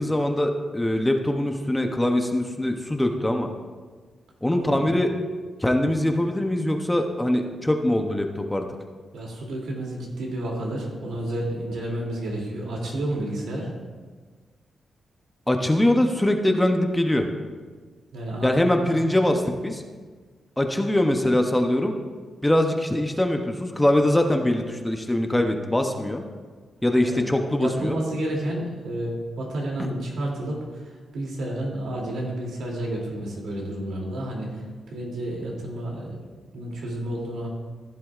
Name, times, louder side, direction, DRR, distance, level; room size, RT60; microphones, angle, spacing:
voice 1, 0.0-3.5 4.4-5.1 5.6-8.7 15.5-17.3 18.4-19.8 20.6-21.9 22.4-26.2 26.8-28.0, left 1 dB, 10° left, 4 dB, 0.7 m, -22 dB
voice 2, 4.5-4.9 9.1-13.7 18.1-18.5 18.8-19.0 27.0-27.2 27.6-37.5, right 1 dB, 90° right, -2 dB, 2.8 m, -31 dB
15.0 x 11.0 x 2.5 m, 1.5 s
wide cardioid pair, 160°, 0 cm